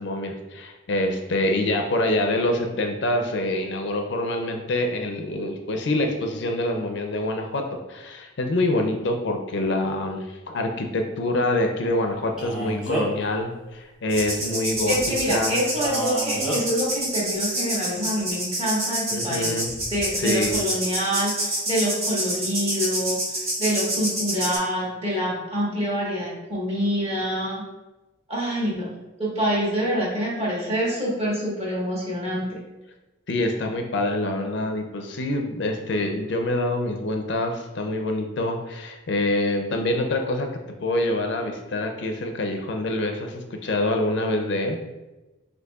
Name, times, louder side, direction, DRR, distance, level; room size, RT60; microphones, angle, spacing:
voice 1, 0.0-7.6 7.9-15.6 19.1-19.7 20.2-20.6 33.3-40.5 40.8-44.8, left 1 dB, 55° left, 4 dB, 0.4 m, -26 dB
Male speech man speaking, 12.4-13.3 15.8-16.6, equal, 5° right, 1.0 m, -29 dB
sound 1, 14.1-24.6, right 1 dB, 85° right, 1.4 m, -28 dB
voice 2, 14.9-19.6 19.9-27.6 28.3-32.6, equal, 30° right, -6 dB, 1.3 m, -26 dB
6.3 x 2.7 x 2.3 m, 1.1 s
head